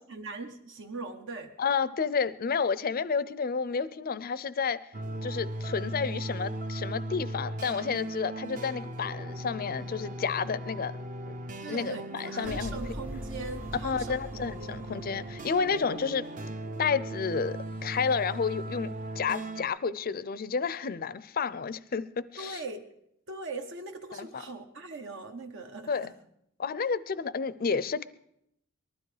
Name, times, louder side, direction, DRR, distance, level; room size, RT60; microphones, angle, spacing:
voice 1, 0.1-1.5 11.6-14.9 22.4-22.9 23.3-26.1, right 3 dB, 60° right, 5 dB, 1.0 m, -40 dB
voice 2, 1.6-4.8 5.2-10.9 11.3-11.4 11.7-12.8 13.8-16.3 16.8-22.6 24.1-24.4 25.9-26.1 26.6-28.0, left 5 dB, 45° left, 17 dB, 0.5 m, -31 dB
sound 1, 4.9-19.6, right 1 dB, 40° right, 0.8 m, -38 dB
sound 2, 12.4-15.9, equal, 5° right, 0.7 m, -43 dB
19.5 x 12.5 x 4.9 m, 0.77 s
head